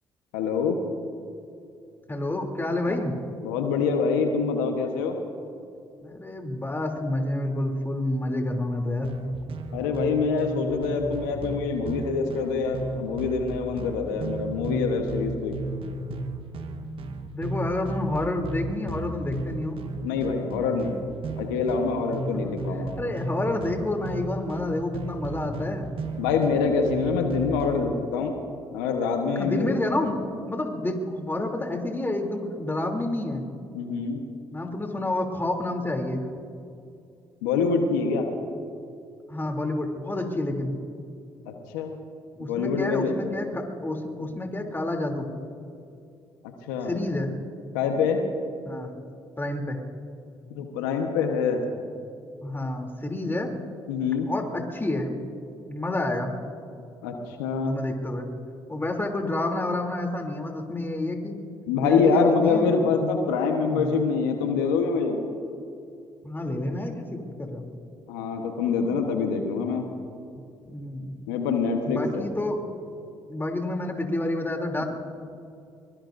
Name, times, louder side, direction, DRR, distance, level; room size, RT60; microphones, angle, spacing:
voice 1, 0.3-0.8 2.9-3.0 3.4-5.2 9.7-15.6 20.0-21.0 21.4-23.0 26.2-28.4 28.7-29.8 30.0-30.1 33.7-34.2 37.4-38.3 41.5-41.9 42.5-43.2 46.7-47.0 47.7-48.2 50.5-51.7 53.9-54.3 57.0-57.1 57.4-57.8 61.7-65.2 68.1-69.8 71.3-72.3, left 5 dB, 90° left, 4 dB, 1.2 m, -25 dB
voice 2, 2.1-3.1 6.0-9.1 17.3-19.8 22.3-22.5 23.0-26.0 29.4-30.2 30.5-33.5 34.5-36.3 39.3-40.7 42.4-45.3 46.8-47.3 48.6-48.9 49.4-49.8 52.4-53.5 54.3-55.1 55.7-56.3 57.6-58.3 58.7-61.3 61.8-62.9 63.7-63.9 66.2-67.6 70.6-71.1 71.8-72.6 73.3-74.8, left 1 dB, 20° left, 2 dB, 3.0 m, -29 dB
sound 1, 9.0-27.9, right 2 dB, 55° right, 1.4 m, -35 dB
23.0 x 21.5 x 2.6 m, 2.5 s
hypercardioid pair, 55°, 11 cm